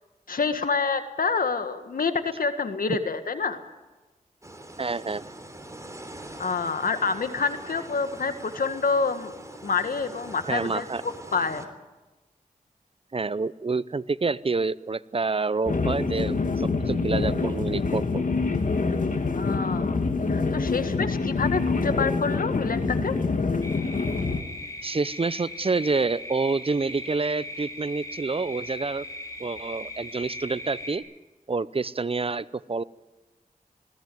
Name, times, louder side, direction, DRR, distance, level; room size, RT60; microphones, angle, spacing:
voice 1, 0.3-3.6 6.4-9.3 9.6-11.6 19.3-20.0 20.3-23.1, left 4 dB, 80° left, 9 dB, 1.8 m, -27 dB
sound 1, 4.4-11.7, right 1 dB, 20° right, 3.5 m, -43 dB
voice 2, 4.8-5.3 10.5-11.0 13.1-18.2 24.8-29.0 29.4-31.0 31.5-32.8, right 4 dB, 40° right, 18 dB, 0.7 m, -28 dB
sound 2, 15.7-24.4, left 4 dB, 65° left, 2.1 m, -26 dB
sound 3, 23.6-31.0, left 1 dB, 25° left, 5.9 m, -39 dB
21.0 x 17.5 x 9.4 m, 1.2 s
cardioid pair, 45°, 14 cm